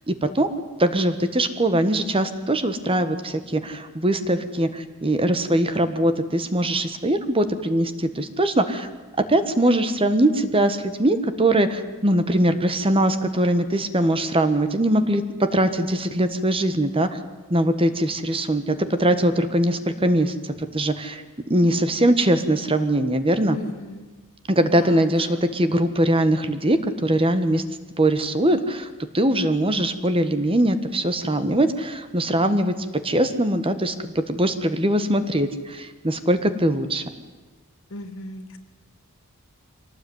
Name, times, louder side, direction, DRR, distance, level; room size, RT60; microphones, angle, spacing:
voice 1, 0.1-0.5 0.8-8.9 9.3-15.2 15.5-17.1 17.5-21.2 21.5-23.6 24.5-27.6 28.0-28.9 29.1-32.7 33.0-37.0, right 1 dB, 25° right, 10 dB, 1.4 m, -21 dB
voice 2, 23.5-24.1 24.6-25.4 37.9-38.6, left 1 dB, 60° left, 9 dB, 2.5 m, -37 dB
24.5 x 18.5 x 9.5 m, 1.3 s
head